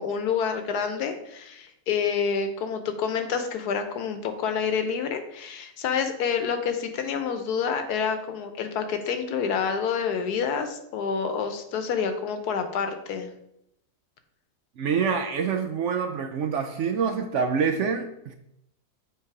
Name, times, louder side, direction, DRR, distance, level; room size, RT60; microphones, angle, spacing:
voice 1, 0.0-13.3, left 6 dB, 85° left, 7 dB, 1.3 m, -28 dB
voice 2, 14.8-18.3, right 6 dB, 70° right, 6 dB, 0.7 m, -26 dB
7.9 x 3.2 x 4.8 m, 0.78 s
omnidirectional pair, 1.6 m